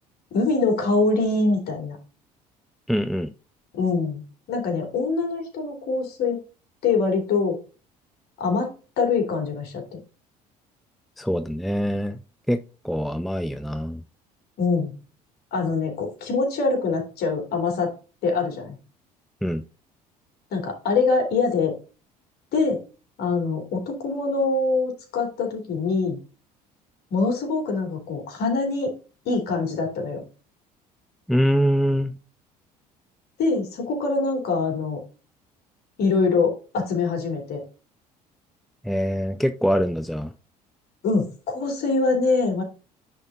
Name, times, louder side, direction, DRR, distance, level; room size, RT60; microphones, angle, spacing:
voice 1, 0.3-2.0 3.7-4.2 4.5-6.4 6.8-7.6 8.4-10.0 14.6-14.9 15.5-17.9 18.2-18.7 20.5-21.7 22.5-22.8 23.2-26.2 27.1-28.9 29.2-30.2 33.4-35.0 36.0-37.6 41.0-42.6, left 4 dB, 50° left, 3.0 m, -24 dB
voice 2, 2.9-3.3 11.2-12.2 12.5-14.0 19.4-19.6 31.3-32.1 38.8-40.3, equal, ahead, 0.6 m, -24 dB
9.8 x 4.3 x 3.8 m
figure-of-eight pair, 60°, 20 cm